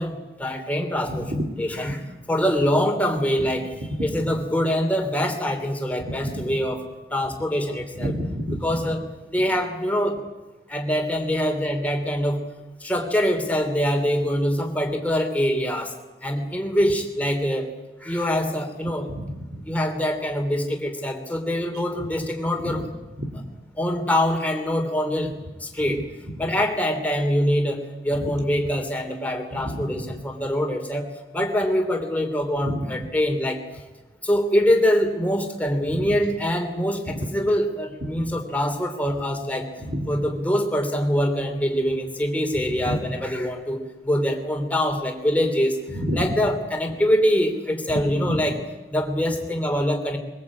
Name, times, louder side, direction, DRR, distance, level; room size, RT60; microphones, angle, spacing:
voice 1, 0.0-1.3 1.6-2.0 2.3-3.7 4.0-6.8 7.1-8.1 8.6-9.0 9.3-10.2 10.7-12.4 12.8-15.9 16.2-17.7 18.0-19.1 19.6-22.9 23.8-25.3 25.6-26.0 26.4-31.1 31.3-33.6 34.2-39.7 40.1-45.8 46.1-48.6 48.9-50.2, equal, 10° left, 3 dB, 3.2 m, -24 dB
voice 2, 8.0-8.6 19.1-19.6 22.6-22.8 23.2-23.3 28.2-28.3 29.6-29.7 32.7-32.8 35.9-36.0 37.2-37.3 38.0-38.1 39.8-40.1 42.7-43.0 45.9-46.2 48.2-48.4, equal, 65° right, 6 dB, 3.1 m, -28 dB
22.0 x 21.5 x 8.6 m, 1.1 s
head